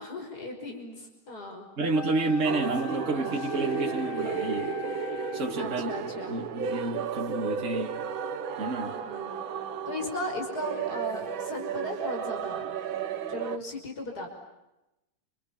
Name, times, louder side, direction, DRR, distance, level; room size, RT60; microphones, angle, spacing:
voice 1, 0.0-1.6 5.5-6.4 9.0-9.5 9.9-12.6 13.3-14.3, left 1 dB, 45° left, 6.2 m, -36 dB
voice 2, 1.8-4.7 5.3-8.0 8.6-9.0, right 3 dB, 35° right, 2.4 m, -30 dB
Wind instrument woodwind instrument, 1.9-5.7, left 10 dB, 80° left, 2.8 m, -40 dB
sound 1, 2.4-13.6, right 7 dB, 70° right, 2.0 m, -33 dB
29.0 x 28.0 x 7.3 m
omnidirectional pair, 2.3 m